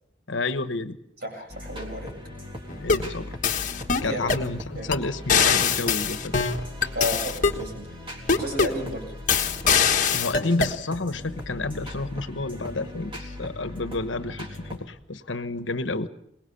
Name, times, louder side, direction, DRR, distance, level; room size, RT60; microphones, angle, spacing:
voice 1, 0.3-1.0 2.8-3.4 4.0-6.5 10.1-16.1, left 3 dB, 80° left, 11 dB, 1.2 m, -30 dB
voice 2, 1.2-2.1 4.1-4.4 4.8-4.9 6.9-7.9 8.4-9.0, equal, 55° right, 1 dB, 8.0 m, -32 dB
sound 1, 1.5-9.8 10.3-14.8, left 1 dB, 30° right, 3.6 m, -39 dB
sound 2, 2.7-3.1 3.4-4.5 4.9-5.0 5.3-7.6 8.3-8.8 9.3-10.8, left 6 dB, 45° left, 1.4 m, -23 dB
23.0 x 20.0 x 7.0 m, 0.76 s
head